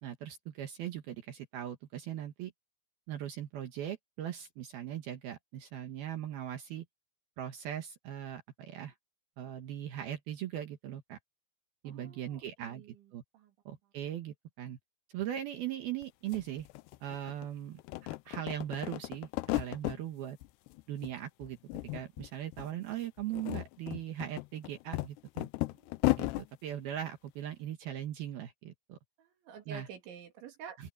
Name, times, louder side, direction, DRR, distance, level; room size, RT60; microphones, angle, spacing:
voice 1, 0.0-2.5 3.1-6.8 7.4-8.9 9.4-11.2 11.8-12.9 13.1-13.2 13.7-14.8 15.1-16.7 17.0-20.4 20.9-21.6 21.9-25.5 26.2-29.0 29.7-29.9 30.8-30.9, right 11 dB, 65° right, 3.0 m, -39 dB
voice 2, 11.8-13.0 13.3-13.5 25.7-26.4 29.2-30.8, right 6 dB, 80° right, 5.0 m, -50 dB
sound 1, 16.0-16.1 16.3-17.5 17.8-20.0 20.4-21.1 21.4-22.3 22.5-22.7 23.2-26.5, left 21 dB, 85° left, 2.5 m, -35 dB
open air
omnidirectional pair, 5.2 m